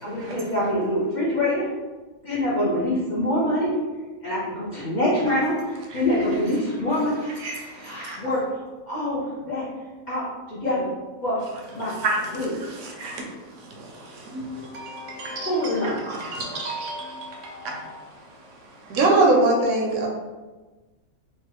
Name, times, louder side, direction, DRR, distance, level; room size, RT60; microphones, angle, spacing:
voice 1, 0.0-1.7 2.2-3.7 4.2-7.4 7.8-8.4 8.9-9.7 10.1-10.9 11.2-11.4 11.7-12.0 12.3-12.5 15.4-16.1, left 1 dB, 45° left, -8 dB, 0.6 m, -25 dB
voice 2, 7.4-8.2 11.8-12.3 12.5-13.3 13.8-18.0, right 2 dB, 70° right, 1 dB, 0.9 m, -33 dB
voice 3, 18.9-20.1, right 2 dB, 85° right, -1 dB, 1.1 m, -18 dB
3.1 x 2.4 x 3.0 m, 1.3 s
omnidirectional pair, 1.4 m